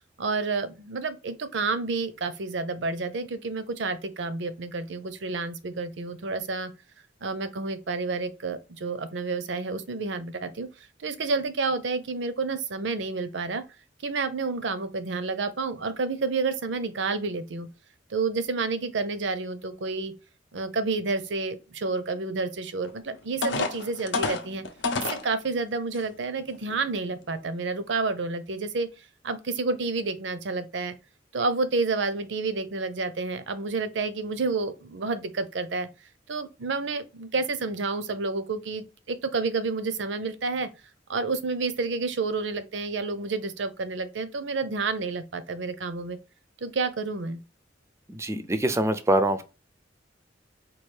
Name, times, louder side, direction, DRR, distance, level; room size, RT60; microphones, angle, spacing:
voice 1, 0.2-6.7 7.2-13.6 14.0-17.7 18.1-20.1 20.5-24.6 25.1-30.9 31.3-35.9 36.3-40.7 41.1-46.2 46.6-47.4, right 3 dB, 70° right, 0.6 m, -30 dB
sound 1, 22.8-22.9 23.4-25.3 25.9-26.0 26.5-26.8, left 3 dB, 70° left, 0.7 m, -28 dB
voice 2, 48.1-49.5, right 1 dB, 15° right, 0.4 m, -24 dB
4.6 x 2.4 x 3.2 m
head